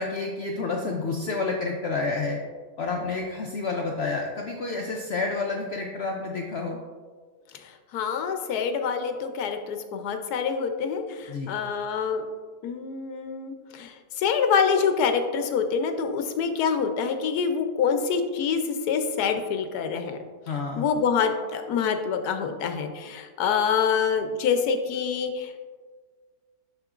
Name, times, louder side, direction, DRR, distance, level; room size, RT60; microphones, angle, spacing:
voice 1, 0.0-2.4 2.8-6.8 11.3-11.5 20.5-20.9, left 3 dB, 70° left, 1 dB, 0.6 m, -29 dB
voice 2, 7.5-12.2 12.6-20.2 20.5-25.6, left 6 dB, 85° left, 6 dB, 1.2 m, -26 dB
6.7 x 6.2 x 2.4 m, 1.5 s
omnidirectional pair, 1.6 m